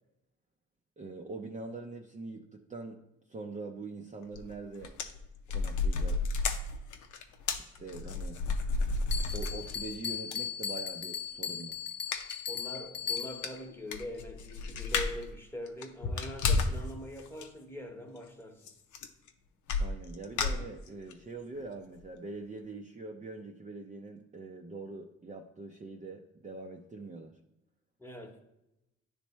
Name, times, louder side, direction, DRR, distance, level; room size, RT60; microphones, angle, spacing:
voice 1, 1.0-4.9 5.5-6.3 7.6-8.4 9.3-11.8 19.8-27.3, right 3 dB, 25° right, 0.6 m, -43 dB
sound 1, 4.4-4.5 4.8-9.9 10.3-10.4 12.1-12.4 12.8-12.9 13.2-13.3 13.4-15.3 15.7-16.9 17.2-17.5 18.7-18.8 18.9-19.3 19.7-21.1 21.6-21.7 22.0-22.1, left 3 dB, 75° left, 0.7 m, -32 dB
Bell, 9.1-13.6, left 7 dB, 35° left, 0.7 m, -37 dB
voice 2, 12.5-18.7 28.0-28.4, left 1 dB, 5° left, 1.0 m, -43 dB
10.0 x 3.4 x 3.1 m
cardioid pair, 90°, 30 cm